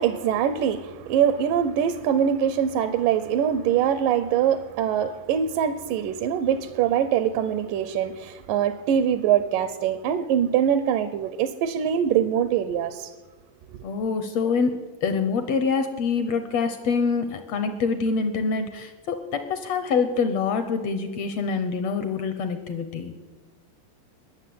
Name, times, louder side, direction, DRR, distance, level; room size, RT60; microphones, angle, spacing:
voice 1, 0.0-13.1, right 9 dB, 75° right, 12 dB, 2.2 m, -23 dB
voice 2, 13.8-23.1, left 5 dB, 75° left, 9 dB, 1.5 m, -25 dB
20.5 x 7.1 x 7.8 m, 1.3 s
omnidirectional pair, 4.1 m